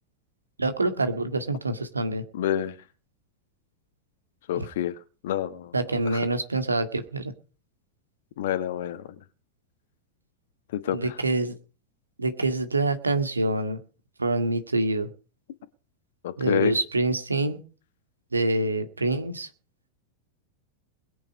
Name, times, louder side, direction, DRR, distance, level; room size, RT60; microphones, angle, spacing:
voice 1, 0.6-2.2 4.6-4.7 5.7-7.3 10.9-11.5 12.2-13.8 14.2-15.1 16.4-17.6 18.3-19.5, right 2 dB, 80° right, 1.9 m, -26 dB
voice 2, 2.3-2.8 4.5-4.9 5.2-5.7 6.1-6.2 8.4-9.0 10.7-11.2 16.2-16.7, left 11 dB, 55° left, 1.2 m, -28 dB
21.0 x 8.9 x 5.2 m
figure-of-eight pair, 90°, 0 cm